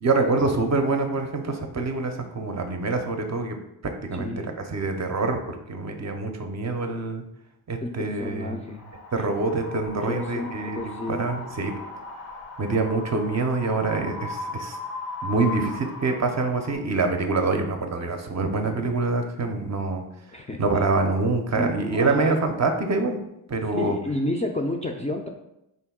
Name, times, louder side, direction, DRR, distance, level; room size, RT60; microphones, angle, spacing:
voice 1, 0.0-3.6 3.8-7.2 7.7-8.5 9.1-11.8 12.6-14.8 15.2-20.0 20.6-23.2 23.5-24.0, right 3 dB, 40° right, 5 dB, 0.6 m, -25 dB
voice 2, 4.1-4.4 7.8-8.8 10.0-11.2 20.3-20.6 21.5-22.4 23.7-25.3, left 1 dB, 15° left, 1 dB, 0.4 m, -30 dB
Wind, 8.6-16.8, left 3 dB, 90° left, 0.8 m, -37 dB
3.8 x 2.2 x 3.6 m, 0.84 s
supercardioid pair, 50°, 45 cm